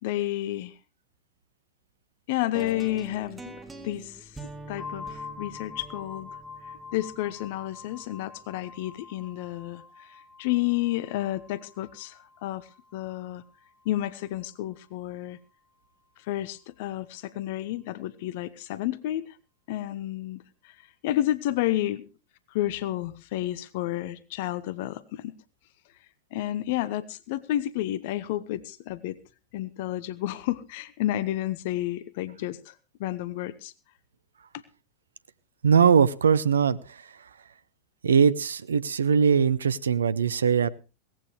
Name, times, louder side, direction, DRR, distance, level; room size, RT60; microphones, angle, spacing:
voice 1, 0.0-0.7 2.3-4.3 4.7-6.3 6.9-13.4 13.8-15.4 16.3-19.4 19.7-20.7 21.0-22.1 22.5-25.3 26.3-29.2 29.5-32.7 33.0-33.7, left 14 dB, 50° left, 17 dB, 0.8 m, -31 dB
sound 1, 2.5-8.6, right 2 dB, 10° right, 1.9 m, -45 dB
sound 2, 4.8-14.4, left 5 dB, 15° left, 1.0 m, -46 dB
voice 2, 35.6-36.8 38.0-40.7, right 6 dB, 70° right, 18 dB, 0.7 m, -21 dB
18.0 x 15.0 x 3.2 m, 0.31 s
figure-of-eight pair, 90°, 0 cm